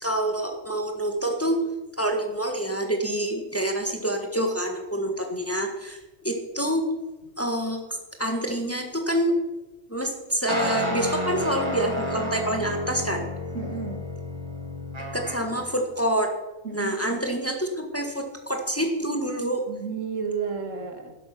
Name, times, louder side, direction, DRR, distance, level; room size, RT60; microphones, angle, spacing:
voice 1, 0.0-1.6 2.0-6.0 6.2-6.9 7.4-7.8 8.2-9.4 9.9-13.2 15.1-16.3 16.7-19.6, right 1 dB, 10° left, 3 dB, 1.5 m, -27 dB
voice 2, 5.0-5.4 13.5-14.1 16.6-17.2 19.7-21.2, right 5 dB, 75° right, 5 dB, 2.1 m, -33 dB
sound 1, 10.5-15.6, left 1 dB, 20° right, 2.5 m, -31 dB
11.5 x 11.5 x 6.0 m, 1.1 s
omnidirectional pair, 1.3 m